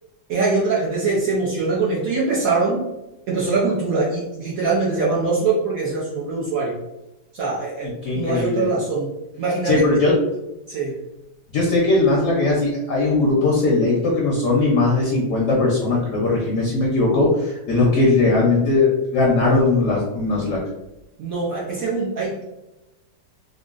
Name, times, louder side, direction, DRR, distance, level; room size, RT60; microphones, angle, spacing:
voice 1, 0.3-2.9 3.3-6.8 7.3-9.1 9.4-9.8 10.7-11.0 21.2-22.4, right 3 dB, 65° right, -5 dB, 0.9 m, -23 dB
voice 2, 7.8-8.7 9.6-10.1 11.5-20.6, left 3 dB, 65° left, -3 dB, 0.8 m, -19 dB
3.7 x 2.0 x 2.4 m, 0.96 s
omnidirectional pair, 1.8 m